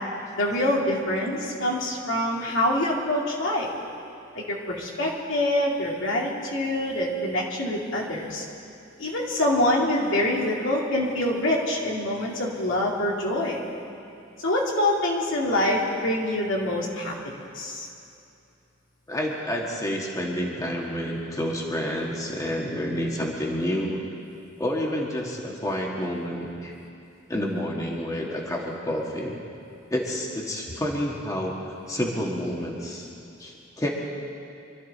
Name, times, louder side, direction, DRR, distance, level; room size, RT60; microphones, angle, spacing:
voice 1, 0.4-3.7 4.3-8.4 9.0-13.6 14.4-17.1 17.5-17.9, left 1 dB, 75° left, -3 dB, 2.6 m, -25 dB
voice 2, 19.1-24.0 24.6-26.7 27.3-29.4 29.9-31.5 31.9-33.1 33.4-33.9, equal, 15° left, -2 dB, 1.6 m, -29 dB
25.0 x 12.5 x 4.2 m, 2.7 s
head